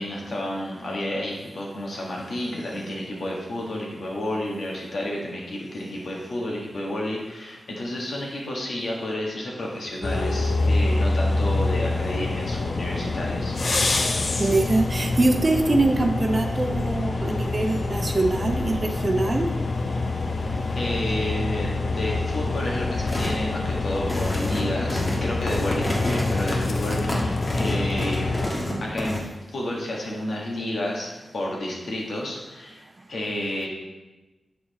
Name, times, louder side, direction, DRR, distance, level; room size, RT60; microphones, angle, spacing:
voice 1, 0.0-13.6 20.7-28.3 28.8-32.8 33.1-33.7, left 1 dB, 75° left, -2 dB, 1.6 m, -31 dB
sound 1, 10.0-28.5, left 3 dB, 55° left, 0.6 m, -26 dB
voice 2, 14.4-19.5, right 2 dB, 35° right, 4 dB, 0.7 m, -23 dB
sound 2, 23.1-23.4 23.9-29.2, left 1 dB, 30° left, 1.3 m, -29 dB
7.1 x 4.8 x 4.1 m, 1.1 s
wide cardioid pair, 95°, 0 cm